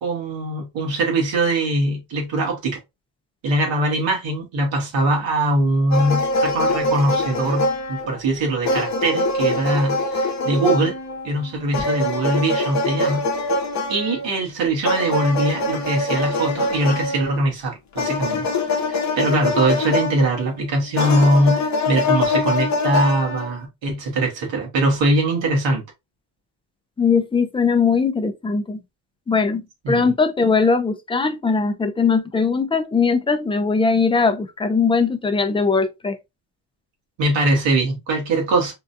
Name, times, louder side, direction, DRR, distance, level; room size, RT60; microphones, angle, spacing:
voice 1, 0.0-2.8 3.4-10.9 11.2-13.3 13.9-18.5 18.9-25.8 29.8-30.1 37.2-38.7, right 1 dB, 85° right, 1.5 m, -22 dB
sound 1, 5.9-8.3 8.6-14.3 14.8-17.4 18.0-20.6 20.9-23.5, left 2 dB, 40° left, 0.7 m, -23 dB
voice 2, 27.0-28.8 29.3-36.2, left 5 dB, 15° left, 0.3 m, -20 dB
3.7 x 2.3 x 2.6 m
cardioid pair, 125°, 44 cm